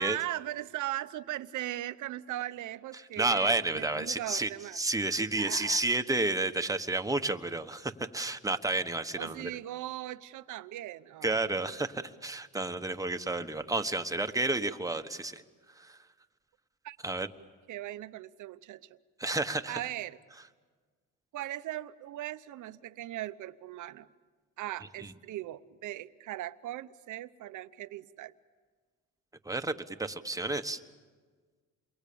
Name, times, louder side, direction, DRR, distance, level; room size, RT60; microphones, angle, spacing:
voice 1, 0.0-4.8 5.3-5.8 9.2-11.7 16.8-17.0 17.7-18.9 19.7-20.2 21.3-24.1 24.6-28.3, right 14 dB, 80° right, 13 dB, 0.9 m, -39 dB
voice 2, 3.2-9.5 11.2-15.4 15.8-16.0 17.0-17.3 19.2-19.8 25.0-25.1 29.4-30.8, right 2 dB, 10° right, 7 dB, 1.3 m, -31 dB
28.5 x 23.0 x 8.7 m, 1.5 s
cardioid pair, 90°, 30 cm